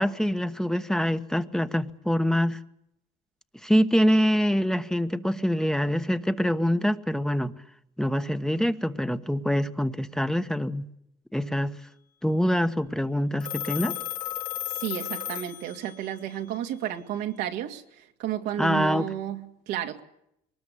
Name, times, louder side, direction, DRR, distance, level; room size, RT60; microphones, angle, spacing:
voice 1, 0.0-2.6 3.6-7.5 8.0-10.9 11.3-11.8 12.2-14.0 18.6-19.1, equal, 5° left, 9 dB, 1.2 m, -25 dB
Telephone, 13.4-16.1, left 13 dB, 55° left, 1.6 m, -34 dB
voice 2, 14.8-20.0, right 11 dB, 90° right, 4 dB, 2.5 m, -32 dB
23.0 x 20.0 x 8.5 m, 0.78 s
cardioid pair, 110°, 17 cm